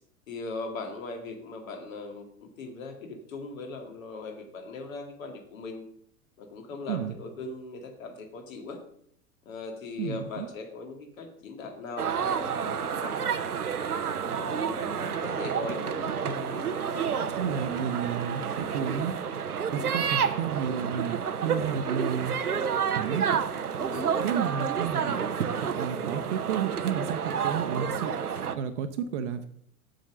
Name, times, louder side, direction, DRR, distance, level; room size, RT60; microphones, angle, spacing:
voice 1, 0.3-5.8 6.4-8.8 9.5-13.3 14.2-17.0 19.7-19.9 23.9-24.3, left 3 dB, 60° left, 4 dB, 2.4 m, -39 dB
voice 2, 10.0-10.5 16.2-16.3 17.1-19.1 19.7-22.3 23.0-23.4 24.2-25.2 25.6-28.1 28.4-29.6, right 8 dB, 50° right, 7 dB, 0.9 m, -31 dB
sound 1, 12.0-28.5, right 7 dB, 80° right, 0.8 m, -30 dB
7.7 x 7.6 x 6.2 m, 0.67 s
figure-of-eight pair, 90°, 44 cm